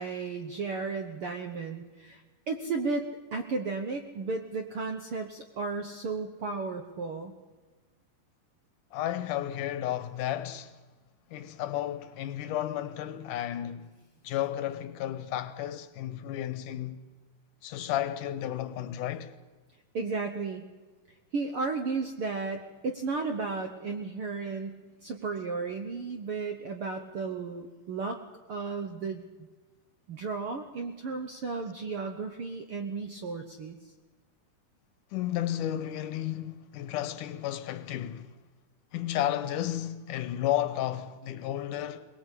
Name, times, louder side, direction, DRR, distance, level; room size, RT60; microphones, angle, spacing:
voice 1, 0.0-2.2 2.5-7.3 19.9-20.6 21.3-28.2 28.5-29.5 30.1-33.8, right 4 dB, 60° right, 1.4 m, -34 dB
voice 2, 8.9-10.8 11.3-13.9 14.2-17.0 17.6-19.3 35.1-38.3 38.9-42.1, left 12 dB, 75° left, 2.3 m, -32 dB
22.0 x 19.5 x 8.4 m
omnidirectional pair, 3.9 m